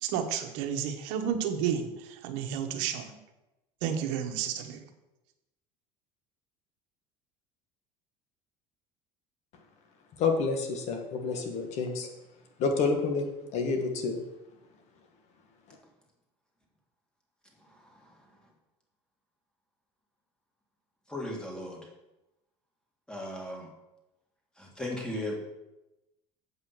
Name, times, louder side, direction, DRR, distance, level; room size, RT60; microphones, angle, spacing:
voice 1, 0.0-3.2 3.8-4.8, right 8 dB, 75° right, 1.1 m, -31 dB
voice 2, 10.2-12.1 12.6-13.3 13.5-14.2, left 4 dB, 60° left, 1.7 m, -28 dB
voice 3, 17.7-18.0 21.1-21.8 23.1-23.7 24.6-25.4, left 1 dB, 5° left, 2.3 m, -37 dB
8.1 x 5.6 x 6.0 m
supercardioid pair, 115°, 13 cm